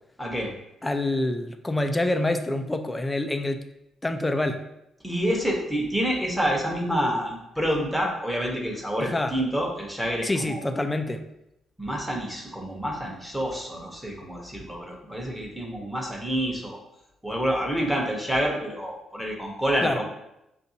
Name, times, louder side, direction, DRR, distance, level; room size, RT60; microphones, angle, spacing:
voice 1, 0.2-0.5 5.0-10.6 11.8-16.8 17.2-20.0, equal, 5° right, -1 dB, 1.0 m, -28 dB
voice 2, 0.8-3.6 4.0-4.6 9.0-9.4 10.2-11.2 19.8-20.0, left 2 dB, 15° left, 8 dB, 0.4 m, -26 dB
5.5 x 2.6 x 2.7 m, 0.85 s
cardioid pair, 90°, 0 cm